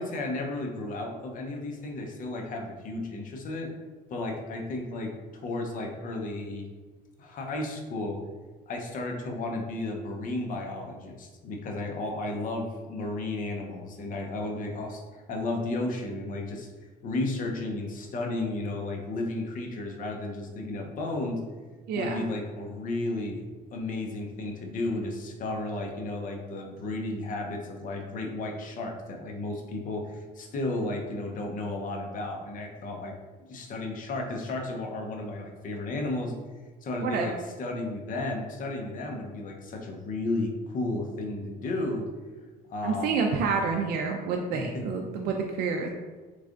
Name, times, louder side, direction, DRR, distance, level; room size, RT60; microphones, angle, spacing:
voice 1, 0.0-3.7 4.1-6.7 7.2-8.2 8.7-16.7 17.0-21.4 21.9-23.4 23.7-33.1 33.4-36.3 36.8-37.3 37.6-42.1 42.7-43.3 44.5-44.8, left 2 dB, 50° left, 2 dB, 0.7 m, -33 dB
voice 2, 21.9-22.2 37.0-37.3 42.8-45.9, right 5 dB, 65° right, 2 dB, 0.4 m, -28 dB
3.6 x 3.2 x 2.4 m, 1.3 s
cardioid pair, 110°, 17 cm